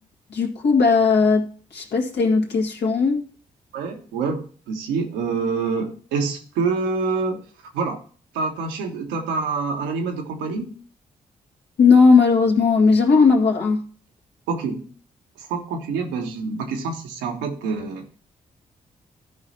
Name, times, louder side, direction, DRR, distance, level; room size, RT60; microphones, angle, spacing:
voice 1, 0.3-3.2 11.8-13.8, left 4 dB, 70° left, 0 dB, 2.0 m, -17 dB
voice 2, 3.7-7.4 7.7-8.0 8.3-10.8 14.5-14.9 15.4-18.2, right 4 dB, 85° right, 4 dB, 1.3 m, -26 dB
13.5 x 4.8 x 4.2 m, 0.43 s
hypercardioid pair, 40°, 18 cm